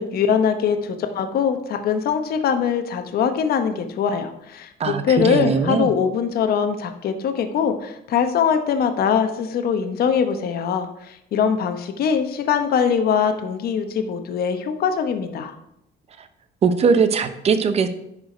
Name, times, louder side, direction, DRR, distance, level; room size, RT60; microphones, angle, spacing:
voice 1, 0.0-15.5, left 7 dB, 50° left, 7 dB, 0.9 m, -22 dB
voice 2, 4.8-5.9 16.2-16.3 16.6-17.9, right 5 dB, 30° right, 11 dB, 0.7 m, -20 dB
10.5 x 4.9 x 5.0 m, 0.80 s
cardioid pair, 175°, 20 cm